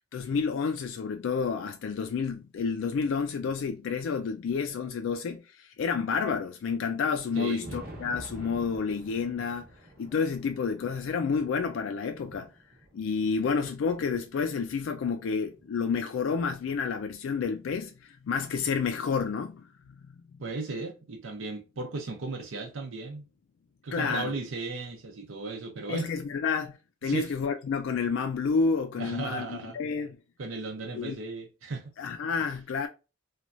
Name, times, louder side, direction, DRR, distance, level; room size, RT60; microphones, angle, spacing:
voice 1, 0.1-9.7 10.0-12.5 12.9-19.7 23.9-24.3 25.9-30.2 31.0-31.2 32.0-32.9, left 5 dB, 75° left, 0.3 m, -30 dB
Thunder, 7.1-15.7 16.3-18.0 19.2-19.3 19.8-19.9 21.8-21.9 23.3-23.4 24.9-25.0, right 1 dB, 50° right, 0.8 m, -50 dB
voice 2, 7.3-7.8 20.4-23.3 23.8-26.1 27.0-27.3 29.0-29.8 30.4-31.9, right 3 dB, 85° right, 0.6 m, -36 dB
3.0 x 2.3 x 2.5 m
head